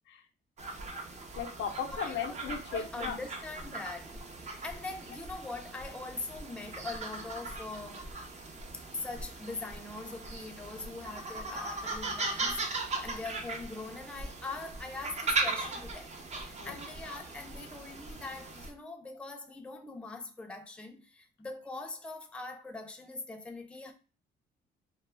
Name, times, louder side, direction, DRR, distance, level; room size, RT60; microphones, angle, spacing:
sound 1, 0.6-18.7, right 3 dB, 35° right, 0.6 m, -39 dB
voice 1, 1.4-3.2 16.6-16.8, left 7 dB, 70° left, 0.5 m, -36 dB
voice 2, 2.7-8.1 8.9-23.9, left 3 dB, 5° left, 0.4 m, -42 dB
2.2 x 2.0 x 3.2 m
cardioid pair, 90°, 20 cm